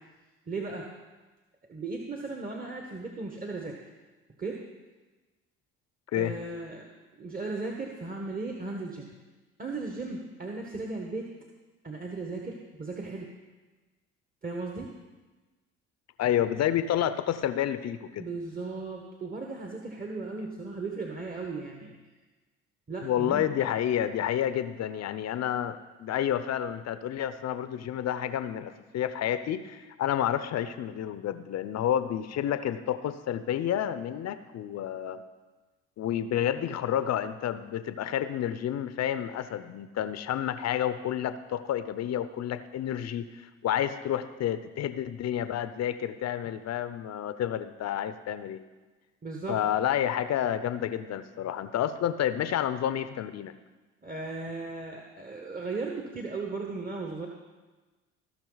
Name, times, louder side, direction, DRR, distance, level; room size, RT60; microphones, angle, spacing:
voice 1, 0.5-0.9 1.7-3.8 4.4-4.7 6.1-6.9 7.2-9.1 9.6-11.3 11.8-13.3 14.4-14.9 18.2-22.0 22.9-23.5 49.2-49.7 54.0-57.3, right 3 dB, 25° right, 0 dB, 1.4 m, -36 dB
voice 2, 16.2-18.3 23.0-35.2 36.0-48.6 49.5-53.5, left 10 dB, 50° left, 12 dB, 0.7 m, -30 dB
17.0 x 6.0 x 4.0 m, 1.2 s
hypercardioid pair, 60°, 34 cm